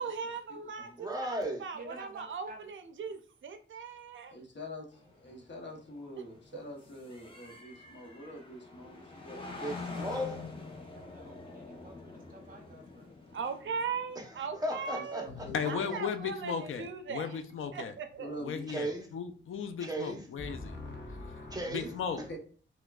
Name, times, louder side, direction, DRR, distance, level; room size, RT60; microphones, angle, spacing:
voice 1, 0.0-4.4 13.3-15.3 15.6-17.4 17.7-18.3, right 5 dB, 70° right, 0.4 m, -39 dB
voice 2, 1.0-1.6 9.6-10.4 14.2-15.7 18.7-19.1 19.8-20.2 21.5-21.9 22.2-22.4, equal, 20° right, 0.7 m, -36 dB
voice 3, 1.7-2.6 10.9-13.2, right 2 dB, 45° right, 1.0 m, -51 dB
voice 4, 4.3-9.6 14.9-15.8 18.2-18.6 20.4-22.4, left 1 dB, 65° left, 0.9 m, -45 dB
sound 1, 4.9-15.6, left 3 dB, 25° left, 0.8 m, -46 dB
voice 5, 15.4-17.9 18.4-20.8 21.7-22.2, left 6 dB, 90° left, 0.4 m, -36 dB
4.5 x 2.2 x 2.3 m
wide cardioid pair, 120°, 20 cm